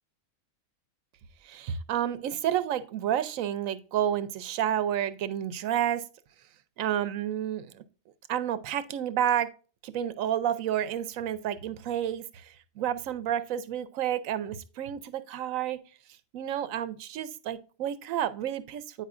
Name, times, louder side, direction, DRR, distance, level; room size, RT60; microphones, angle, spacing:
voice 1, 1.4-6.0 6.8-7.8 8.3-9.5 9.8-15.8 16.3-19.0, right 10 dB, 80° right, 1.0 m, -30 dB
9.1 x 4.8 x 2.4 m
omnidirectional pair, 1.4 m